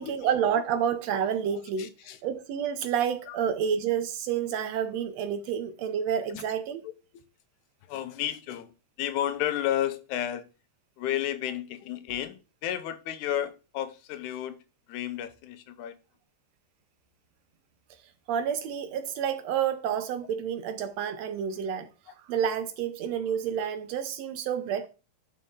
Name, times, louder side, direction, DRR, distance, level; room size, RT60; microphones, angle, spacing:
voice 1, 0.0-1.9 2.2-6.9 18.3-21.9 22.3-24.9, right 8 dB, 75° right, 1.7 m, -29 dB
voice 2, 1.8-2.2 3.3-3.4 6.3-6.4 6.8-7.2 7.9-8.7 9.0-10.5 11.0-14.6 14.9-15.9, left 11 dB, 85° left, 2.2 m, -32 dB
11.0 x 4.3 x 3.6 m
omnidirectional pair, 3.4 m